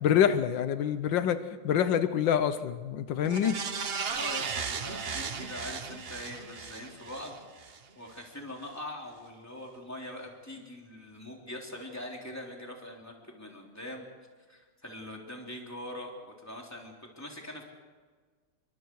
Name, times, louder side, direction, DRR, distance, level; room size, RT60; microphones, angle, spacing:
voice 1, 0.0-1.4 1.6-3.6, left 9 dB, 85° left, 11 dB, 1.6 m, -26 dB
sound 1, 3.3-7.8 8.2-8.3, right 5 dB, 40° right, 1.0 m, -36 dB
voice 2, 4.1-7.4 8.0-14.1 14.5-17.6, left 1 dB, 10° left, 0 dB, 3.5 m, -42 dB
28.5 x 23.5 x 4.7 m, 1.5 s
omnidirectional pair, 2.0 m